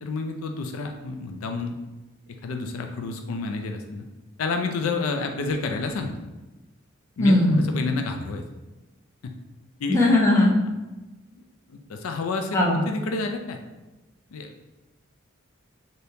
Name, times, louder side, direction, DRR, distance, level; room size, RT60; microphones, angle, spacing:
voice 1, 0.0-1.8 2.4-4.0 4.4-6.1 7.2-8.4 9.2-9.3 9.8-10.0 11.7-13.6 14.3-14.5, left 3 dB, 85° left, 5 dB, 0.4 m, -29 dB
voice 2, 7.2-7.6 9.9-10.5 12.5-12.8, left 1 dB, 15° left, -4 dB, 0.6 m, -18 dB
3.4 x 2.8 x 2.7 m, 1.1 s
head